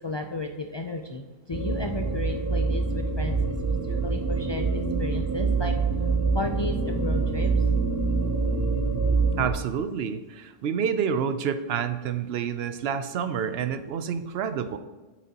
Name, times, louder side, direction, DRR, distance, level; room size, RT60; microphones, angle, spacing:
voice 1, 0.0-3.4 3.8-5.7 6.3-7.6, left 2 dB, 45° left, 3 dB, 0.3 m, -33 dB
sound 1, 1.5-9.5, right 4 dB, 25° right, 0.4 m, -25 dB
voice 2, 9.4-14.8, right 7 dB, 80° right, 11 dB, 0.8 m, -28 dB
8.4 x 7.2 x 2.8 m, 1.2 s
omnidirectional pair, 1.0 m